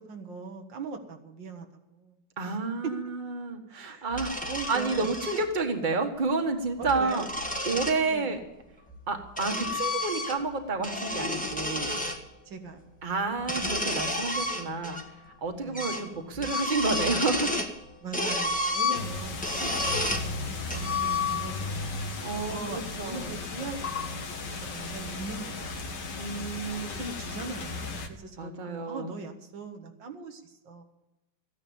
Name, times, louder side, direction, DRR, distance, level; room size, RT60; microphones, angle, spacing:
voice 1, 0.1-2.6 2.8-2.9 3.7-4.1 4.4-5.1 6.8-7.3 8.1-8.4 9.4-9.7 12.5-12.9 15.6-16.0 18.0-22.0 22.5-26.1 27.0-30.8, right 4 dB, 90° right, 4 dB, 2.2 m, -41 dB
voice 2, 2.4-4.3 4.7-7.3 7.6-8.4 9.1-11.9 13.0-15.0 15.4-17.5 22.2-23.3 26.2-27.0 28.4-29.2, right 3 dB, 25° right, 4 dB, 1.6 m, -30 dB
sound 1, 4.1-5.4 6.7-8.0 8.9-10.5 10.8-12.2 13.4-15.0 15.3-15.4 15.7-16.1 16.3-17.8 18.1-20.3 20.7-21.6, left 2 dB, 5° left, 1.3 m, -31 dB
sound 2, 18.9-28.1, left 3 dB, 75° left, 1.8 m, -36 dB
14.5 x 10.0 x 7.0 m, 0.99 s
omnidirectional pair, 1.9 m